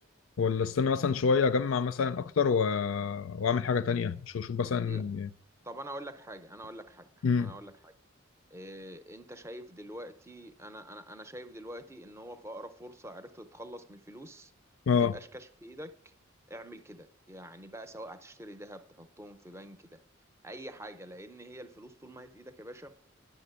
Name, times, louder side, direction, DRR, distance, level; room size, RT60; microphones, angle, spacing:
voice 1, 0.4-5.3 7.2-7.5 14.9-15.1, left 5 dB, 75° left, 0.4 m, -27 dB
voice 2, 5.6-7.9 8.5-14.5 14.9-15.9 16.5-20.0 20.4-23.1, right 1 dB, 15° right, 0.6 m, -45 dB
10.5 x 6.0 x 8.1 m
head